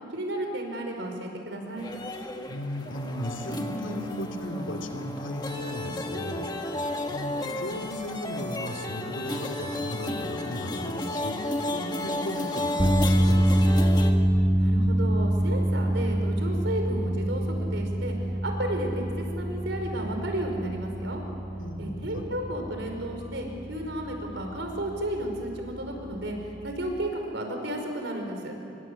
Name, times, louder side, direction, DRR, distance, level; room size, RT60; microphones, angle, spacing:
voice 1, 0.0-1.9 14.6-17.4 17.7-18.1 18.4-21.2 21.8-26.3 26.6-28.5, right 1 dB, 70° right, 3 dB, 5.1 m, -33 dB
sound 1, 1.8-14.1, left 1 dB, 20° left, 1.6 m, -33 dB
voice 2, 2.5-13.6 21.6-22.3, equal, 80° left, 3 dB, 2.6 m, -36 dB
sound 2, 12.8-27.1, right 1 dB, 10° right, 1.0 m, -26 dB
26.5 x 24.5 x 8.4 m, 2.9 s
head